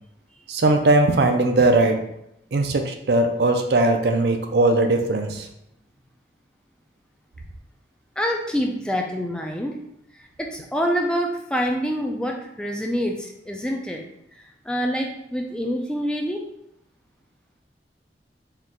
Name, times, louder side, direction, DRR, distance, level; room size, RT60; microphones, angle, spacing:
voice 1, 0.5-2.0 2.5-5.5, right 2 dB, 70° right, 5 dB, 0.5 m, -19 dB
voice 2, 8.2-9.7 10.2-14.0 14.4-16.4, equal, 5° left, 1 dB, 0.4 m, -26 dB
4.3 x 2.4 x 3.7 m, 0.78 s
head